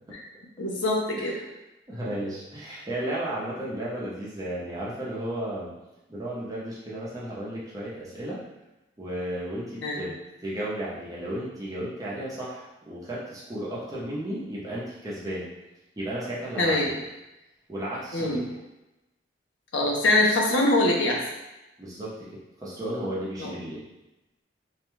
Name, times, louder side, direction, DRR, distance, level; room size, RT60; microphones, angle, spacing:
voice 1, 0.6-1.4 9.8-10.0 16.6-16.9 18.1-18.5 19.7-21.2 23.4-23.5, left 2 dB, 85° left, -1 dB, 0.6 m, -23 dB
voice 2, 1.9-5.7 6.1-8.4 9.0-10.2 10.4-15.5 16.0-17.0 17.7-18.5 21.8-23.8, right 1 dB, 20° right, -7 dB, 0.7 m, -34 dB
2.6 x 2.2 x 3.0 m, 0.98 s
head